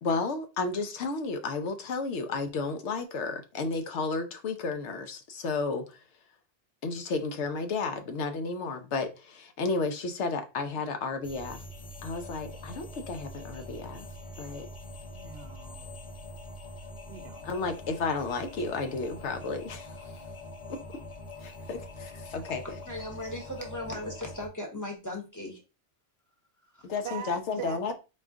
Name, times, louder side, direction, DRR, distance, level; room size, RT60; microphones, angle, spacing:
voice 1, 0.0-5.8 6.8-11.6 12.0-14.1 14.4-14.7 17.4-19.9 20.7-20.8 21.4-22.6 26.8-27.9, left 4 dB, 85° left, 1.0 m, -32 dB
sound 1, 11.2-24.5, left 1 dB, 40° left, 0.7 m, -44 dB
voice 2, 15.1-16.1 17.1-17.5 27.0-27.9, right 9 dB, 70° right, 0.8 m, -41 dB
voice 3, 22.6-25.6 26.7-26.9, left 1 dB, 15° left, 1.0 m, -38 dB
4.2 x 2.4 x 3.6 m
omnidirectional pair, 1.1 m